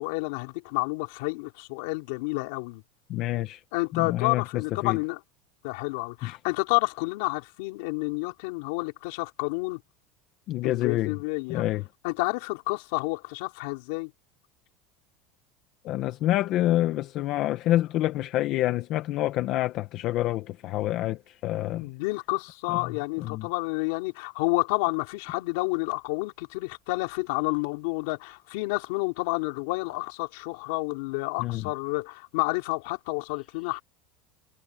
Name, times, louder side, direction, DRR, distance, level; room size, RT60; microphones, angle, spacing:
voice 1, 0.0-2.8 3.7-5.2 5.6-9.8 10.6-11.6 12.0-14.1 21.7-33.8, left 26 dB, 70° left, 3.8 m, -30 dB
voice 2, 3.1-3.6 3.9-5.0 6.2-6.4 10.5-11.1 11.5-11.8 15.8-21.9 22.7-22.8 23.2-23.5 31.4-31.7, left 15 dB, 45° left, 1.0 m, -27 dB
supercardioid pair, 155°, 0 cm